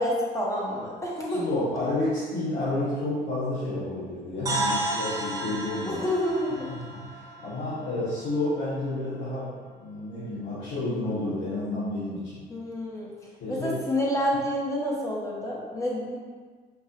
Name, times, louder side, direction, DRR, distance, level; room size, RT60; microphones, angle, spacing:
voice 1, 0.0-1.6 5.9-6.7 12.5-13.1 13.5-16.2, left 1 dB, 20° left, -4 dB, 1.0 m, -28 dB
voice 2, 1.3-6.0 6.7-12.4 13.4-13.8, left 2 dB, 80° left, -13 dB, 1.4 m, -30 dB
sound 1, 4.5-8.4, right 2 dB, 20° right, 0.8 m, -32 dB
4.6 x 2.6 x 2.9 m, 1.5 s
cardioid pair, 110°, 17 cm